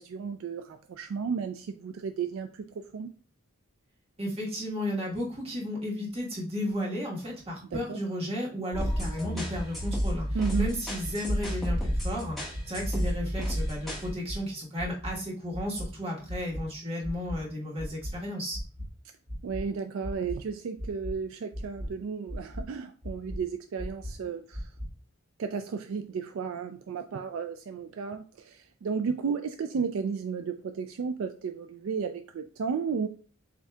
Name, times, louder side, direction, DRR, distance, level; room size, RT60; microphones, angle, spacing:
voice 1, 0.0-2.6 2.9-3.1 7.7-8.0 10.3-10.8 19.4-24.7 25.4-33.1, right 5 dB, 60° right, 7 dB, 0.3 m, -33 dB
voice 2, 4.2-10.3 10.6-18.6, left 1 dB, 25° right, -4 dB, 1.3 m, -33 dB
sound 1, 8.7-14.1, equal, ahead, 1.3 m, -31 dB
sound 2, 8.8-9.1 9.5-9.9 10.3-10.6 11.0-11.4 11.8-12.1 12.5-12.9 13.3-13.6 14.0-14.4 14.8-15.1 15.5-15.9 16.3-16.6 17.0-17.4 17.8-18.1 18.5-18.9 19.3-19.6 20.0-20.4 20.8-21.1 21.5-21.9 22.3-22.6 23.0-23.4 23.8-24.1 24.5-24.9, equal, 80° right, 1.9 m, -36 dB
7.4 x 2.7 x 2.3 m, 0.40 s
head